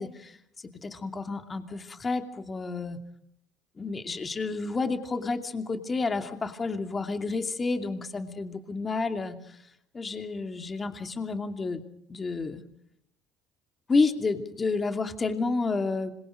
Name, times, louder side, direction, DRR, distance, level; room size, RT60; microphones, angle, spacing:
voice 1, 0.0-3.0 3.8-9.6 9.9-11.8 12.1-12.6 13.9-16.1, left 3 dB, 30° left, 6 dB, 2.7 m, -30 dB
26.5 x 22.5 x 5.1 m, 0.75 s
hypercardioid pair, 70°, 0 cm